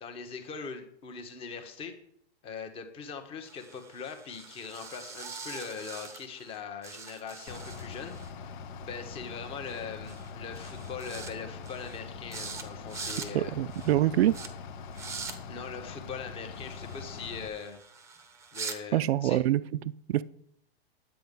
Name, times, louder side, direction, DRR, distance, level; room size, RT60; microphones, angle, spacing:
voice 1, 0.0-1.9 2.4-8.1 8.4-13.5 15.5-17.8 18.5-19.4, left 5 dB, 20° left, 7 dB, 1.2 m, -41 dB
sound 1, 3.4-6.6 6.8-8.3 9.7-9.8 10.1-10.3 10.6-11.3 11.6-12.0 12.3-12.6 12.9-13.3 13.7-13.9 14.3-14.5 14.9-15.4 16.5-18.8, right 5 dB, 10° right, 0.9 m, -43 dB
Bus / Idling, 7.5-17.5, left 5 dB, 50° left, 0.9 m, -43 dB
voice 2, 13.3-14.3 18.9-19.6 20.1-20.2, right 13 dB, 75° right, 18 dB, 0.5 m, -25 dB
10.5 x 8.4 x 5.4 m, 0.67 s
hypercardioid pair, 160°, 31 cm